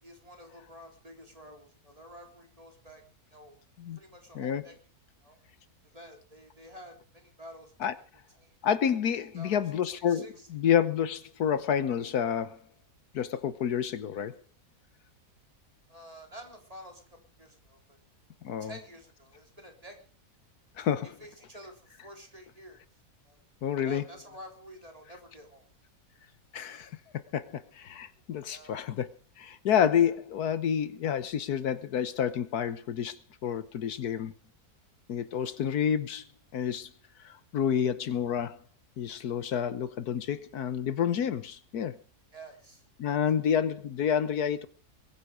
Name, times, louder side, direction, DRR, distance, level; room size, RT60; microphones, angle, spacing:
voice 1, 0.0-3.0 3.3-3.6 4.0-4.7 5.2-5.4 5.9-8.0 8.4-8.6 9.1-9.6 10.1-10.5 15.9-18.0 18.6-19.9 21.2-22.8 23.3-23.4 23.8-25.7 28.5-28.8 35.4-35.6 42.3-43.5, equal, 25° right, 3.9 m, -50 dB
voice 2, 8.6-12.6 13.1-14.4 18.4-18.7 20.8-21.1 23.6-24.1 26.5-26.9 27.3-29.1 29.4-34.3 35.1-36.2 36.5-36.9 37.2-38.6 39.0-42.0 43.0-44.7, left 8 dB, 80° left, 1.5 m, -29 dB
22.0 x 10.5 x 5.0 m
omnidirectional pair, 1.6 m